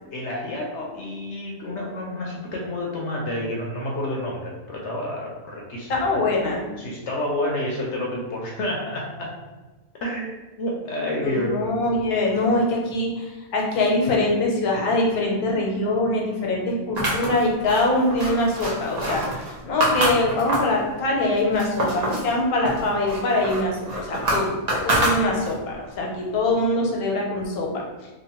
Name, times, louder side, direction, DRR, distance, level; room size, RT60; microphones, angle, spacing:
voice 1, 0.1-6.2 6.8-9.3 10.0-11.5, left 1 dB, 65° left, -2 dB, 0.8 m, -29 dB
voice 2, 5.9-6.6 11.2-28.1, left 2 dB, 85° left, -1 dB, 1.2 m, -23 dB
sound 1, 17.0-20.8 21.2-22.3 22.6-25.7, right 1 dB, 60° right, 0.4 m, -26 dB
2.9 x 2.2 x 2.9 m, 1.2 s
omnidirectional pair, 1.5 m